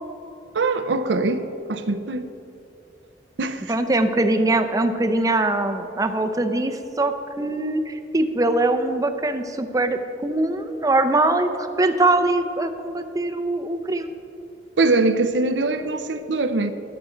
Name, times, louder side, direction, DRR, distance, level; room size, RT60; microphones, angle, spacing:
voice 1, 0.5-2.3 3.4-3.7 14.8-16.7, right 3 dB, 85° right, 0.7 m, -22 dB
voice 2, 3.7-14.1, right 2 dB, 20° right, 0.6 m, -22 dB
14.0 x 11.0 x 3.9 m
head